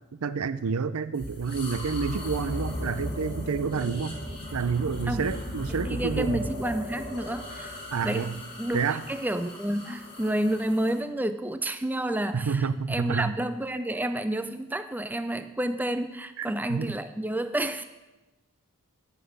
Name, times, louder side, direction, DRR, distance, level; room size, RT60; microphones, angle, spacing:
voice 1, 0.1-4.2 4.5-6.5 7.9-8.4 8.7-9.0 12.3-13.3 16.4-17.0, right 5 dB, 85° right, 15 dB, 0.5 m, -29 dB
sound 1, 1.1-11.0, equal, 25° left, 2.6 m, -36 dB
voice 2, 5.8-8.3 8.6-8.8 9.1-17.8, right 1 dB, 10° right, 11 dB, 0.4 m, -30 dB
14.5 x 6.1 x 6.4 m, 1.1 s
head